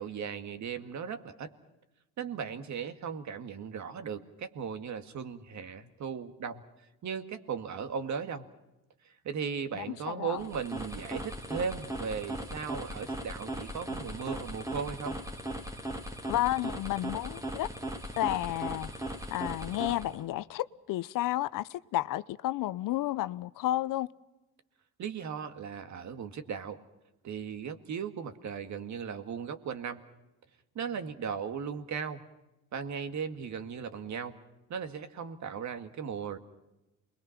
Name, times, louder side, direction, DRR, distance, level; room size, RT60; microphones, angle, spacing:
voice 1, 0.0-1.5 2.2-6.6 7.0-8.5 9.0-15.2 25.0-26.8 27.2-30.0 30.8-32.2 32.7-34.4 34.7-36.4, right 6 dB, 55° right, 2.0 m, -37 dB
voice 2, 9.7-10.5 16.3-17.7 18.2-18.9 19.3-24.1, left 15 dB, 65° left, 0.7 m, -31 dB
sound 1, 10.3-20.3, right 1 dB, 10° right, 2.3 m, -38 dB
28.0 x 21.5 x 5.8 m
cardioid pair, 95°, 35 cm